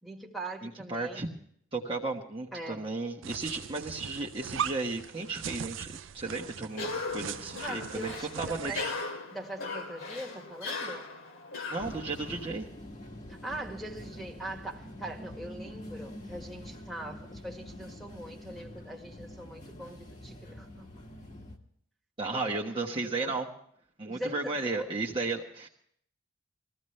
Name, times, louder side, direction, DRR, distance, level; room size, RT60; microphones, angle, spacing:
voice 1, 0.0-1.3 2.5-2.9 7.6-8.8 9.3-11.1 13.3-21.1 22.3-23.4 24.1-24.9, right 1 dB, ahead, 1.9 m, -42 dB
voice 2, 0.6-1.3 1.7-8.7 11.7-12.7 22.2-23.5 24.0-25.7, right 3 dB, 25° right, 1.3 m, -34 dB
sound 1, 3.2-9.1, right 8 dB, 70° right, 0.5 m, -39 dB
Cough, 6.7-12.5, left 3 dB, 80° left, 2.6 m, -38 dB
sound 2, 11.8-21.6, left 1 dB, 35° left, 1.9 m, -45 dB
21.5 x 15.5 x 3.3 m
head